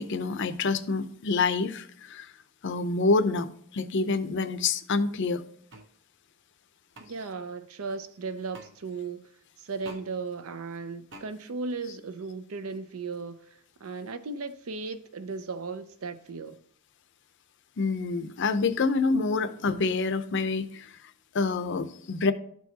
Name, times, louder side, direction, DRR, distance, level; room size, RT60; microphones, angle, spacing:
voice 1, 0.0-2.3 2.6-5.4 17.8-21.0 21.3-22.3, left 4 dB, 55° left, 0.5 m, -27 dB
sound 1, 5.7-5.9 6.9-7.1 8.5-8.7 9.8-10.0 11.1-11.3, right 2 dB, 55° right, 0.9 m, -46 dB
voice 2, 7.0-9.3 9.6-16.6, right 4 dB, 80° right, 0.6 m, -36 dB
12.5 x 4.6 x 2.8 m
head